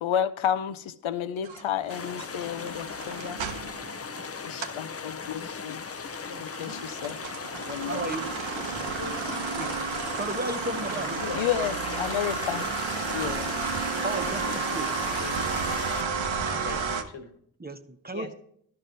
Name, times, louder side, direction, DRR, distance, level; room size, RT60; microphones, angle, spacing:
voice 1, 0.0-3.4 4.4-5.8 6.6-7.2 7.7-8.1 11.3-12.6 13.1-13.5, left 9 dB, 90° left, 0.6 m, -31 dB
sound 1, 1.4-4.8 5.2-17.0, right 5 dB, 75° right, 0.9 m, -32 dB
sound 2, 1.9-16.0, left 5 dB, 30° left, 0.5 m, -38 dB
voice 2, 3.5-3.9 6.1-6.8 8.9-10.1 10.8-11.7 12.6-13.1 14.4-15.6 16.4-17.3 18.1-18.3, left 4 dB, 70° left, 1.4 m, -42 dB
voice 3, 7.9-8.3 10.2-11.1 14.0-14.4 14.7-14.9 17.6-18.3, right 2 dB, 20° right, 0.9 m, -33 dB
11.5 x 5.6 x 3.9 m
cardioid pair, 40°, 46 cm